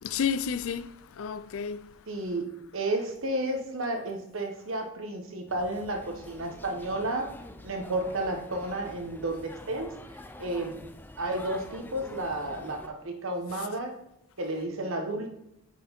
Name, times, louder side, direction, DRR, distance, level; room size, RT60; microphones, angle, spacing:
voice 1, 0.0-2.4 2.8-3.1 13.5-13.7 14.6-14.7, left 7 dB, 80° left, 0.4 m, -33 dB
voice 2, 2.1-7.3 7.6-9.9 10.4-10.8 11.2-14.0 14.4-15.3, right 1 dB, 75° right, 1.0 m, -32 dB
sound 1, 5.5-12.9, left 1 dB, 10° left, 0.3 m, -46 dB
6.0 x 4.9 x 5.1 m
head